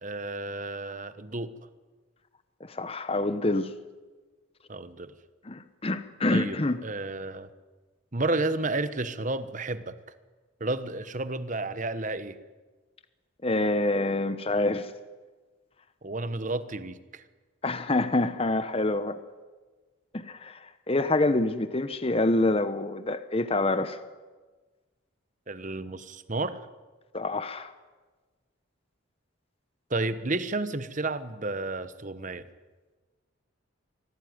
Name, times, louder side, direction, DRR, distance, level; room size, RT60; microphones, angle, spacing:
voice 1, 0.0-1.5 4.7-5.1 6.3-7.5 8.1-10.0 10.6-12.4 16.0-17.2 25.5-26.6 29.9-32.5, right 2 dB, 40° right, 1.2 m, -31 dB
voice 2, 2.7-3.7 5.5-6.8 13.4-14.9 17.6-19.2 20.1-20.6 20.9-24.0 27.1-27.7, left 2 dB, 30° left, 0.9 m, -26 dB
25.0 x 17.5 x 9.6 m
head